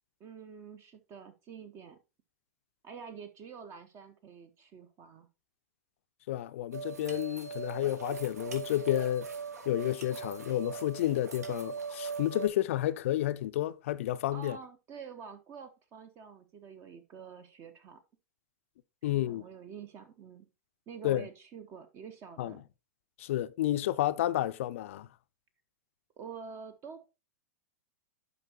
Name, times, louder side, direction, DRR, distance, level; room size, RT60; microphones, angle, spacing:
voice 1, 0.2-2.0 2.8-5.3 14.3-18.0 19.0-20.5 20.9-22.6 26.2-27.1, right 6 dB, 30° right, 0.7 m, -47 dB
voice 2, 6.3-9.3 9.7-14.6 19.0-19.4 21.0-21.3 22.4-22.6 23.2-25.1, left 13 dB, 50° left, 0.5 m, -31 dB
sound 1, 6.7-12.5, right 5 dB, 70° right, 1.5 m, -40 dB
11.0 x 5.2 x 2.8 m
figure-of-eight pair, 100°, 9 cm